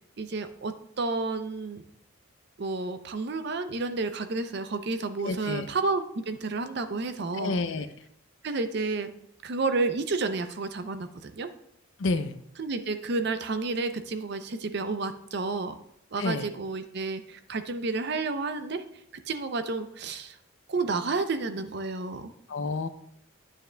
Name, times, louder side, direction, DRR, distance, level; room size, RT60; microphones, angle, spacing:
voice 1, 0.2-1.8 2.6-7.6 8.4-9.1 9.4-11.5 12.6-15.8 16.1-18.8 19.3-20.4 20.7-22.3, right 3 dB, 50° right, 10 dB, 0.5 m, -31 dB
voice 2, 5.2-5.7 7.3-7.9 12.0-12.3 16.2-16.5 22.5-22.9, left 3 dB, 60° left, 11 dB, 0.5 m, -29 dB
9.0 x 7.3 x 2.2 m, 0.73 s
head